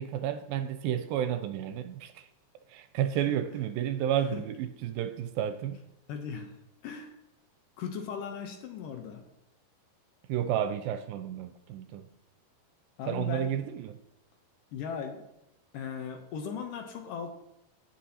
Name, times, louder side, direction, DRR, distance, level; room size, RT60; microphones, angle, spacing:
voice 1, 0.0-2.3 2.7-5.8 10.3-12.1 13.1-14.0, right 10 dB, 80° right, 10 dB, 2.2 m, -31 dB
voice 2, 6.1-6.5 6.8-7.1 7.8-9.2 13.0-13.5 14.7-15.2 15.7-17.3, left 7 dB, 75° left, 4 dB, 2.2 m, -37 dB
17.0 x 5.8 x 2.8 m, 0.85 s
omnidirectional pair, 4.3 m